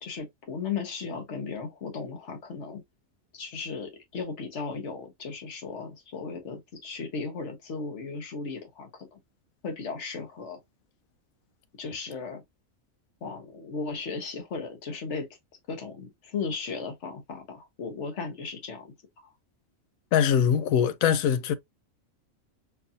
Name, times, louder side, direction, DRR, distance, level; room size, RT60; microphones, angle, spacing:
voice 1, 0.0-2.8 3.3-9.2 9.6-10.6 11.8-12.4 13.2-15.3 15.7-18.9 19.2-19.3, left 4 dB, 55° left, 1.4 m, -36 dB
voice 2, 20.1-21.5, left 8 dB, 80° left, 1.0 m, -22 dB
4.5 x 2.6 x 2.7 m
omnidirectional pair, 1.4 m